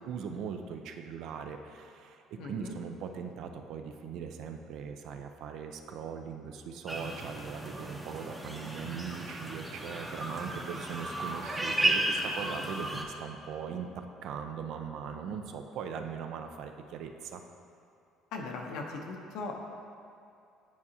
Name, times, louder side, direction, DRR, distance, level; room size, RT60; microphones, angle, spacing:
voice 1, 0.0-17.4, right 6 dB, 65° right, 6 dB, 0.5 m, -40 dB
voice 2, 2.4-2.8 18.3-19.6, left 3 dB, 75° left, 1 dB, 0.8 m, -39 dB
sound 1, 6.9-13.0, right 1 dB, 10° right, 0.7 m, -34 dB
9.3 x 4.8 x 2.8 m, 2.5 s
cardioid pair, 120°, 0 cm